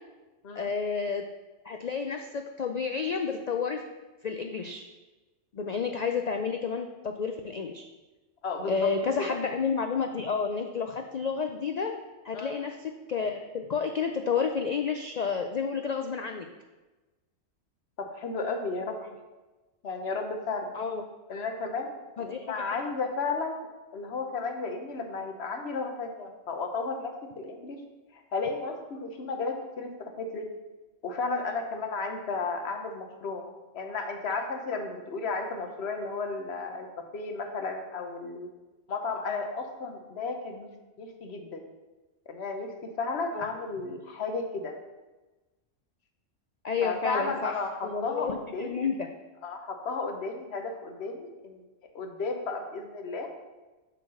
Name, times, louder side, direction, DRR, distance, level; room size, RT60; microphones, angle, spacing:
voice 1, 0.6-1.3 1.6-3.8 4.2-4.8 5.5-7.8 8.7-11.9 12.2-12.8 13.1-16.5 20.7-21.0 22.2-22.7 43.3-43.5 46.6-47.6 47.8-48.9, left 5 dB, 85° left, 5 dB, 0.3 m, -30 dB
voice 2, 8.4-8.8 9.2-9.3 12.3-12.6 18.1-18.9 19.8-20.7 21.3-27.8 28.1-30.5 31.0-33.4 33.7-38.5 38.9-40.7 41.0-41.6 42.3-44.7 46.8-48.8 49.4-51.6 51.9-53.3, left 4 dB, 60° left, 4 dB, 1.1 m, -33 dB
6.6 x 3.9 x 6.3 m, 1.2 s
omnidirectional pair, 1.3 m